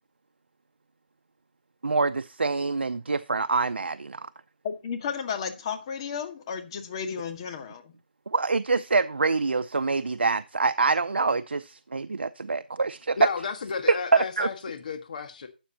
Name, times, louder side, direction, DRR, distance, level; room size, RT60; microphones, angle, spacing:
voice 1, 1.8-4.3 8.3-13.2 14.1-14.5, right 4 dB, 90° right, 0.6 m, -26 dB
voice 2, 4.6-7.9, left 7 dB, 30° left, 1.8 m, -33 dB
voice 3, 13.2-15.5, left 5 dB, 50° left, 1.6 m, -33 dB
12.5 x 9.0 x 2.9 m
hypercardioid pair, 165°, 6 cm